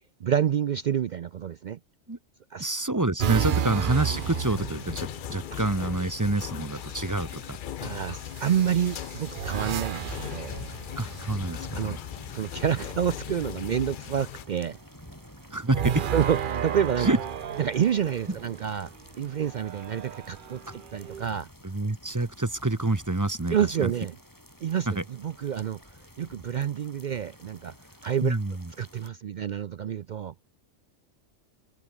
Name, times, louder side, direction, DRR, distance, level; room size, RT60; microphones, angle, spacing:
voice 1, 0.2-1.8 2.5-2.7 7.8-10.5 11.7-12.0 12.3-14.8 16.1-17.1 17.6-21.5 23.5-24.1 24.6-25.8 26.2-27.7 28.0-28.4 28.8-30.3, right 9 dB, 85° right, 0.4 m, -28 dB
voice 2, 2.6-7.6 11.0-12.0 15.5-16.1 17.0-17.2 21.6-23.9 24.9-25.0 28.2-28.7, right 2 dB, 15° right, 0.9 m, -27 dB
sound 1, 3.2-5.4 6.7-7.2 8.3-11.7 15.7-18.6 19.4-21.2, right 8 dB, 45° right, 0.8 m, -32 dB
sound 2, 3.9-14.4, left 10 dB, 60° left, 0.5 m, -38 dB
sound 3, 9.6-29.1, equal, 15° left, 6.4 m, -49 dB
open air
omnidirectional pair, 1.4 m